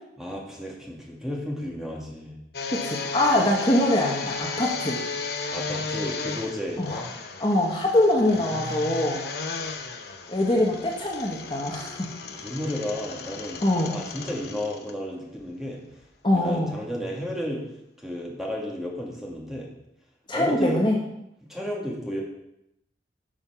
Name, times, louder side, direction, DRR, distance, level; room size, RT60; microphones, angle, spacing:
voice 1, 0.2-2.3 5.5-6.8 9.1-9.2 12.3-15.8 16.3-17.6 18.0-19.7 20.3-20.9 21.5-22.2, left 1 dB, 5° right, -2 dB, 2.0 m, -32 dB
sound 1, 2.5-14.9 15.4-15.5 16.0-16.1, left 4 dB, 65° left, 0.9 m, -34 dB
voice 2, 2.7-5.0 6.8-7.0 7.4-9.2 10.3-12.1 13.6-13.9 16.2-16.7 20.3-21.0, left 1 dB, 25° left, -1 dB, 1.3 m, -23 dB
10.5 x 5.8 x 5.7 m, 0.83 s
head